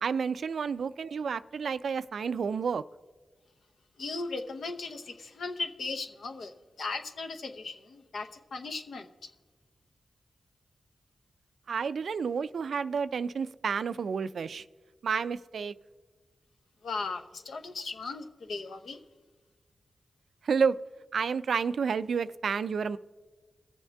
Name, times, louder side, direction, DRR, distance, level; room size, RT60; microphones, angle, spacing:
voice 1, 0.0-2.8 11.7-14.6 15.0-15.7 20.4-20.8 21.1-23.0, right 6 dB, 80° right, 15 dB, 0.3 m, -30 dB
voice 2, 4.0-9.1 16.8-19.0, left 3 dB, 80° left, 6 dB, 0.8 m, -37 dB
21.5 x 7.2 x 3.4 m, 1.4 s
cardioid pair, 40°, 0 cm